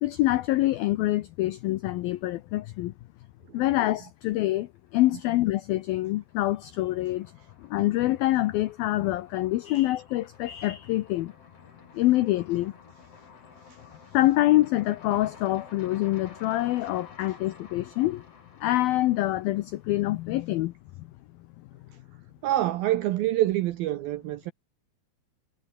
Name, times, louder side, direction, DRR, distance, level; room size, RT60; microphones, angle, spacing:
voice 1, 0.0-2.9 3.5-4.7 4.9-7.3 7.7-11.3 11.9-12.7 14.1-18.2 18.6-20.7, left 16 dB, 85° left, 2.1 m, -25 dB
sound 1, 4.5-5.3 5.6-20.7, left 4 dB, 35° left, 5.0 m, -53 dB
voice 2, 22.4-24.5, right 14 dB, 80° right, 2.2 m, -26 dB
omnidirectional pair, 5.3 m